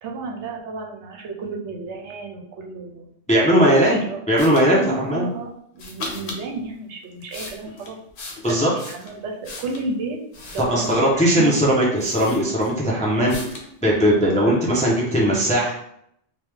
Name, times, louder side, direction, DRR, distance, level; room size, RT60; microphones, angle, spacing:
voice 1, 0.0-3.1 3.7-4.2 4.7-8.0 8.5-10.2 10.5-11.6, right 3 dB, 75° right, 1 dB, 0.9 m, -32 dB
voice 2, 3.3-4.0 4.3-5.3 8.4-8.7 10.6-13.4 13.8-15.7, equal, 10° left, -5 dB, 0.4 m, -18 dB
sound 1, 4.4-4.7 5.8-6.4 7.0-9.9 10.3-11.1 11.6-11.7 12.0-12.9 13.3-13.7, left 2 dB, 65° left, 0.9 m, -37 dB
3.1 x 2.3 x 3.3 m, 0.72 s
omnidirectional pair, 1.3 m